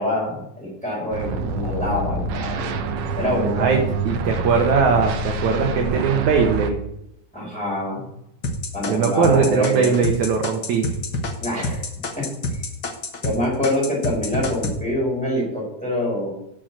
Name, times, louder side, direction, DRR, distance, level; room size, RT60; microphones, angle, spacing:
voice 1, 0.0-2.9 3.2-3.8 7.3-8.1 8.7-10.0 11.4-11.8 12.2-12.6 13.2-16.3, left 1 dB, ahead, -4 dB, 4.1 m, -25 dB
sound 1, 1.1-6.7, right 3 dB, 90° right, 1.4 m, -26 dB
voice 2, 4.1-6.8 8.9-10.9, right 5 dB, 65° right, 2 dB, 2.1 m, -20 dB
sound 2, 8.4-13.4 13.6-14.8, left 3 dB, 80° left, 1.0 m, -27 dB
6.9 x 6.3 x 7.4 m, 0.80 s
omnidirectional pair, 4.1 m